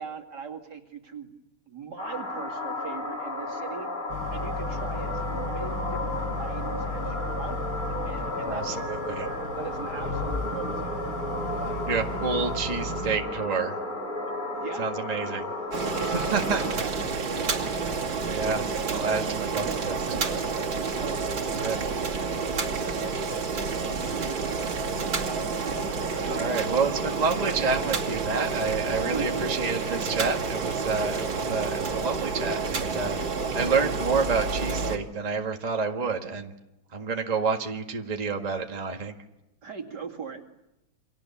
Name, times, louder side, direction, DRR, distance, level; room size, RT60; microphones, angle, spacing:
voice 1, 0.0-1.3 1.7-3.9 4.3-8.7 9.1-11.0 11.6-11.8 14.5-14.9 15.8-18.0 18.5-21.2 21.6-22.1 24.1-25.4 26.1-26.4 28.8-29.5 39.6-40.4, right 6 dB, 60° right, 3 dB, 2.9 m, -40 dB
sound 1, 2.0-16.7, left 1 dB, 25° left, 4.7 m, -33 dB
Boat Water vehicle, 4.1-13.2, left 2 dB, 90° left, 5.6 m, -35 dB
voice 2, 8.4-9.3 11.9-13.8 14.8-15.5 16.1-16.7 18.3-18.6 18.9-20.0 21.6-21.8 26.3-33.2 33.5-36.5 36.9-39.2, right 4 dB, 20° right, 3 dB, 1.7 m, -29 dB
Boiling, 15.7-35.0, right 4 dB, 80° right, 3.4 m, -29 dB
29.5 x 25.5 x 7.2 m, 0.90 s
omnidirectional pair, 2.1 m